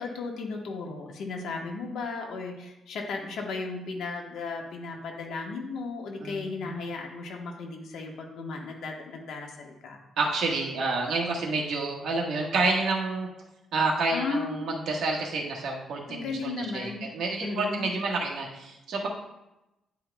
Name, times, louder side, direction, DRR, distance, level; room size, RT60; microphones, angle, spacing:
voice 1, 0.0-10.0 14.1-14.6 16.1-17.0 17.4-17.8, left 4 dB, 80° left, 1 dB, 1.2 m, -35 dB
voice 2, 6.2-6.7 10.2-13.3 13.7-19.1, right 3 dB, 75° right, -1 dB, 1.4 m, -29 dB
10.0 x 4.6 x 2.3 m, 0.94 s
cardioid pair, 100°, 0 cm